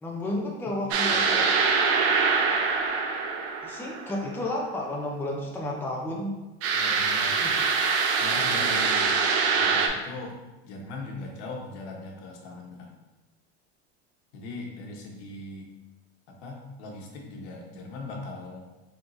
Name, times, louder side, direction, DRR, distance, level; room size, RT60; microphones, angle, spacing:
voice 1, 0.0-1.5 3.6-6.3 7.4-7.6, left 1 dB, 5° left, -2 dB, 0.6 m, -32 dB
sound 1, 0.9-4.3 6.6-9.9, right 5 dB, 45° right, 0.6 m, -24 dB
voice 2, 6.7-7.4 8.2-9.1 9.6-10.4 10.6-12.9 14.3-15.7 16.3-18.6, left 2 dB, 80° left, 0 dB, 1.1 m, -39 dB
4.5 x 3.6 x 2.7 m, 1.1 s
supercardioid pair, 130°, 34 cm